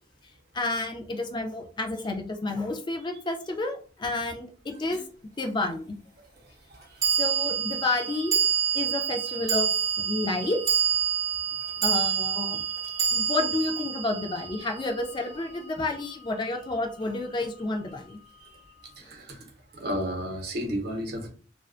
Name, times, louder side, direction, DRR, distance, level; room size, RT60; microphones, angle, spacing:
voice 1, 0.5-4.5 4.8-5.0 5.4-6.0 7.2-8.4 8.7-9.7 10.0-10.6 11.8-12.6 13.1-18.2, left 2 dB, 25° left, 4 dB, 0.3 m, -30 dB
sound 1, 4.9-5.0 7.0-15.4, right 8 dB, 20° right, 0.8 m, -27 dB
voice 2, 19.0-19.4 19.7-21.3, equal, 55° right, 2 dB, 0.7 m, -32 dB
2.4 x 2.2 x 2.4 m, 0.41 s
head